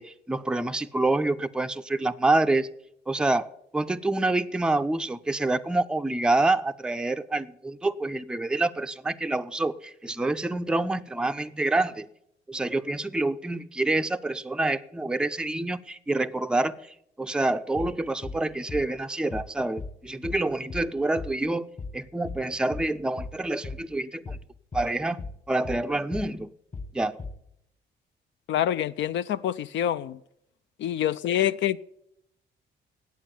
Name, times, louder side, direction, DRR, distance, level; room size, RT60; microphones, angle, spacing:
voice 1, 0.0-2.7 3.1-12.1 12.5-16.8 17.2-24.4 24.7-25.2 25.5-26.5 26.9-27.2, right 2 dB, 5° right, 0.4 m, -27 dB
sound 1, 17.8-18.0 18.2-18.4 18.7-18.9 19.3-19.5 19.8-20.0 20.2-20.4 20.7-20.9 21.2-21.4 21.8-22.0 22.2-22.4 22.7-22.9 23.2-23.4 23.6-23.8 24.3-24.5 24.7-24.9 25.2-25.4 25.6-25.8 26.1-26.3 26.7-26.9 27.2-27.4, left 3 dB, 40° left, 1.6 m, -37 dB
voice 2, 28.5-30.2 30.8-31.8, left 11 dB, 70° left, 0.4 m, -26 dB
8.8 x 8.3 x 8.8 m
cardioid pair, 90°, 20 cm